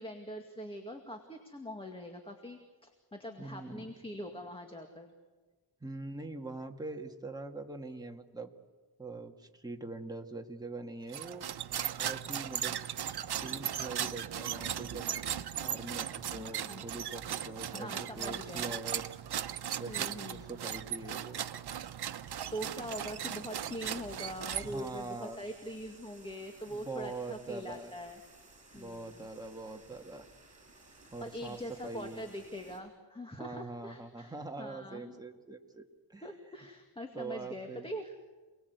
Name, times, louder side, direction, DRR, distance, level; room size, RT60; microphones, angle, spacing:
voice 1, 0.0-5.1 16.4-16.8 17.7-18.7 19.9-20.5 22.5-28.2 28.7-29.3 31.0-35.2 36.2-38.2, equal, 15° left, 4 dB, 2.1 m, -43 dB
voice 2, 3.4-3.9 5.8-8.5 9.0-11.5 11.9-12.8 13.3-15.1 15.6-19.1 19.8-21.4 22.8-23.0 24.6-25.4 26.7-27.9 28.7-30.3 31.1-32.2 33.4-36.3 37.1-37.9, right 3 dB, 10° right, 3 dB, 1.9 m, -43 dB
sound 1, 11.1-25.0, right 10 dB, 85° right, 1.0 m, -37 dB
sound 2, 22.2-32.8, right 2 dB, 40° right, 6.8 m, -58 dB
28.5 x 20.0 x 8.1 m, 1.3 s
wide cardioid pair, 120°, 38 cm